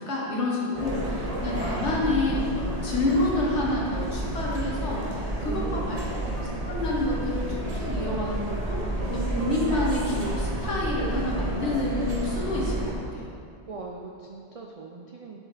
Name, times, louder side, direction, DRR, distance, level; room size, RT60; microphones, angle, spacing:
voice 1, 0.0-6.0 6.4-13.3, left 2 dB, 80° left, -3 dB, 1.5 m, -28 dB
sound 1, 0.7-13.0, right 1 dB, 35° right, 0.9 m, -30 dB
voice 2, 5.4-6.6 13.7-15.4, right 4 dB, 65° right, 0 dB, 0.3 m, -40 dB
7.0 x 6.3 x 3.3 m, 2.5 s
omnidirectional pair, 1.2 m